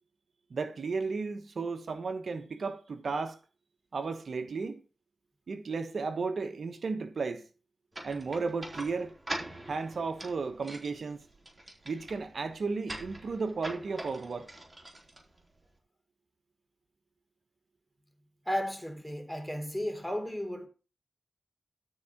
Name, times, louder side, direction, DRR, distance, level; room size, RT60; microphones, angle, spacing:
voice 1, 0.5-3.4 3.9-4.8 5.5-7.5 8.0-9.1 9.7-11.2 11.8-14.5, right 4 dB, 75° right, 1.1 m, -34 dB
sound 1, 7.9-15.8, right 1 dB, 30° right, 4.2 m, -44 dB
voice 2, 18.4-20.7, equal, 10° left, 3.3 m, -34 dB
13.0 x 4.8 x 5.8 m
cardioid pair, 45°, 0 cm